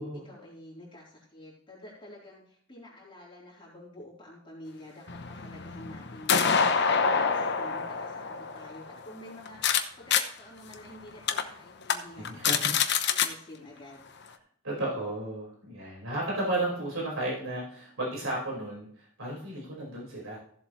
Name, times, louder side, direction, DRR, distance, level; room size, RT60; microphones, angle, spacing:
voice 1, 0.0-6.5 6.9-12.5 12.7-14.1 14.7-14.8, left 1 dB, 25° left, -7 dB, 3.9 m, -48 dB
sound 1, 5.1-9.8 10.1-10.2 10.7-10.8 11.3-11.4 11.8-11.9 12.2-13.3, left 6 dB, 55° left, 0.9 m, -26 dB
voice 2, 12.2-12.7 14.6-20.4, right 1 dB, 75° right, -4 dB, 5.1 m, -33 dB
16.0 x 7.6 x 3.2 m, 0.63 s
head